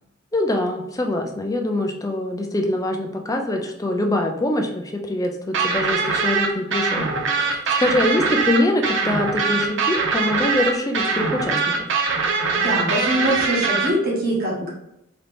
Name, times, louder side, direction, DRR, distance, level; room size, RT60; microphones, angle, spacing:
voice 1, 0.3-7.1 7.4-11.7, left 1 dB, 15° left, 3 dB, 0.5 m, -24 dB
sound 1, 5.5-13.9, right 4 dB, 60° right, 0.7 m, -22 dB
voice 2, 12.5-14.7, right 1 dB, 45° right, -5 dB, 1.4 m, -23 dB
3.9 x 2.8 x 3.5 m, 0.84 s
head